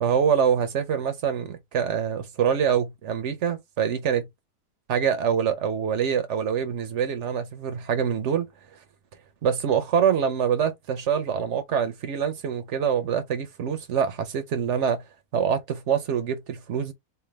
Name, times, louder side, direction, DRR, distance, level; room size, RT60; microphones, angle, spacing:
voice 1, 0.0-4.3 4.9-8.5 9.4-15.0 15.3-16.9, right 7 dB, 60° right, 0.9 m, -25 dB
3.4 x 2.2 x 3.3 m
omnidirectional pair, 1.6 m